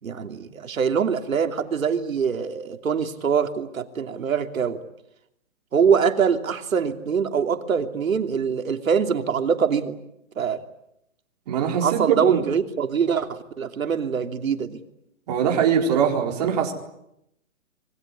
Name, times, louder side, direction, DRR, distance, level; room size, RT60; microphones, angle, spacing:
voice 1, 0.0-4.8 5.7-10.0 10.4-10.6 11.8-14.8, right 6 dB, 80° right, 7 dB, 3.1 m, -24 dB
voice 2, 11.5-12.4 15.3-16.7, right 7 dB, 30° right, 1 dB, 4.3 m, -22 dB
26.5 x 21.5 x 9.9 m, 0.80 s
hypercardioid pair, 170°, 40 cm